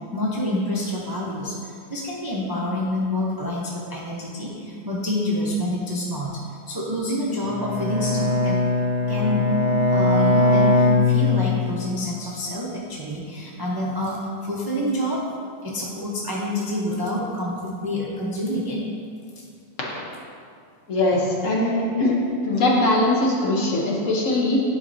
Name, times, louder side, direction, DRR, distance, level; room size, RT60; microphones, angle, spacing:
voice 1, 0.1-8.6 9.1-9.5 9.9-15.2 15.6-18.8, left 1 dB, 35° right, -5 dB, 0.3 m, -27 dB
Bowed string instrument, 7.5-11.8, left 2 dB, 65° left, 2.4 m, -20 dB
voice 2, 20.9-22.2 22.4-24.6, left 2 dB, 50° left, -3 dB, 1.1 m, -21 dB
10.5 x 5.2 x 2.7 m, 2.3 s
omnidirectional pair, 1.9 m